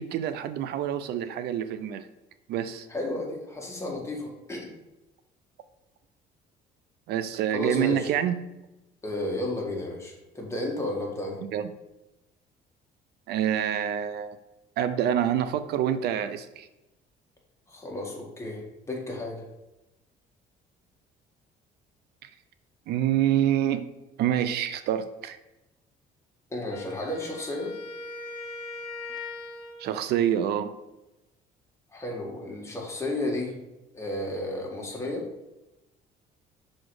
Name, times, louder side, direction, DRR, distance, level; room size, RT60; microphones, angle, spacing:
voice 1, 0.0-2.1 2.5-2.9 7.1-8.4 11.5-11.7 13.3-14.4 14.8-16.7 22.2-22.3 22.9-23.9 24.2-25.4 29.8-30.7, right 10 dB, 75° right, 12 dB, 0.5 m, -27 dB
voice 2, 2.9-4.7 7.5-8.1 9.0-11.4 17.7-19.4 26.5-27.7 31.9-33.6 33.9-35.3, left 1 dB, 15° left, -2 dB, 1.8 m, -32 dB
Wind instrument woodwind instrument, 26.7-30.1, left 3 dB, 75° left, 0.9 m, -39 dB
6.0 x 4.2 x 4.8 m, 0.97 s
cardioid pair, 110°, 17 cm